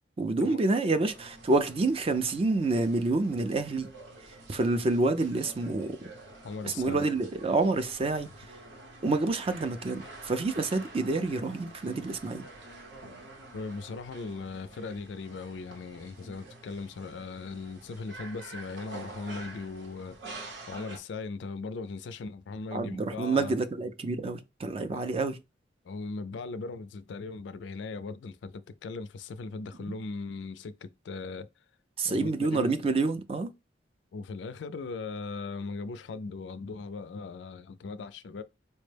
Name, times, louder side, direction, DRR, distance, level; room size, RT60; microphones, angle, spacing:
voice 1, 0.2-3.9 4.5-6.0 6.6-8.3 9.0-12.4 22.7-25.4 32.0-33.5, right 3 dB, 30° right, 0.4 m, -28 dB
sound 1, 1.0-21.0, right 2 dB, 80° right, 0.9 m, -48 dB
voice 2, 6.4-7.1 13.5-23.6 24.9-25.1 25.8-31.5 32.0-32.7 34.1-38.4, left 4 dB, 75° left, 0.4 m, -39 dB
4.3 x 2.1 x 3.2 m
head